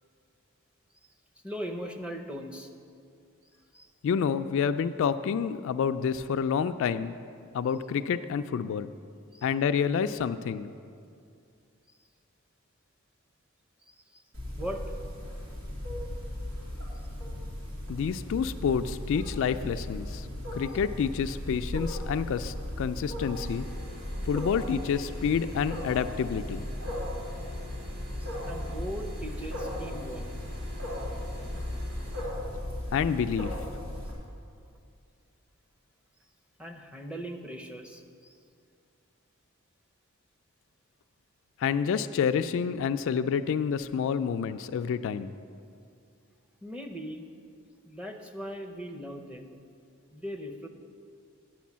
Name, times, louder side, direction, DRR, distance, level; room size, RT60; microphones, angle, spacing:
voice 1, 1.4-2.7 3.7-3.9 9.3-9.5 13.9-14.2 14.6-14.8 28.2-30.3 36.6-38.4 46.6-47.3 47.9-49.6 50.1-50.7, equal, 5° right, 3 dB, 0.7 m, -39 dB
voice 2, 4.0-7.2 7.5-8.9 9.4-10.7 17.9-20.3 20.5-23.7 24.2-26.6 32.9-33.6 41.6-45.3, left 7 dB, 65° left, 10 dB, 0.3 m, -28 dB
Wild animals, 14.3-34.1, left 1 dB, 85° right, 2.5 m, -36 dB
sound 1, 23.3-32.3, left 1 dB, 35° right, 2.0 m, -47 dB
9.4 x 6.2 x 7.3 m, 2.4 s
head